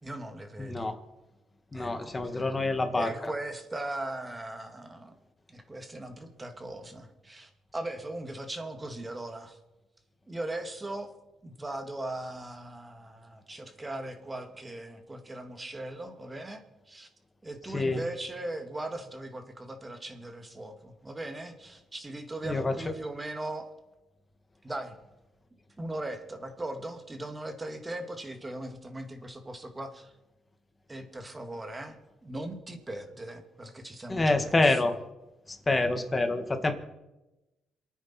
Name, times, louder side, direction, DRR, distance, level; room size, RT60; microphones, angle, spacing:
voice 1, 0.0-0.9 1.7-2.4 3.0-5.1 5.5-9.6 10.3-11.1 11.4-17.1 17.4-23.7 24.6-24.9 25.8-30.1 30.9-34.9, right 1 dB, 20° right, 6 dB, 2.2 m, -39 dB
voice 2, 0.6-1.0 1.7-3.3 17.7-18.0 22.4-22.8 34.1-34.9 35.5-36.7, left 2 dB, 25° left, 6 dB, 2.0 m, -27 dB
27.5 x 9.5 x 4.5 m, 1.0 s
cardioid pair, 90°, 0 cm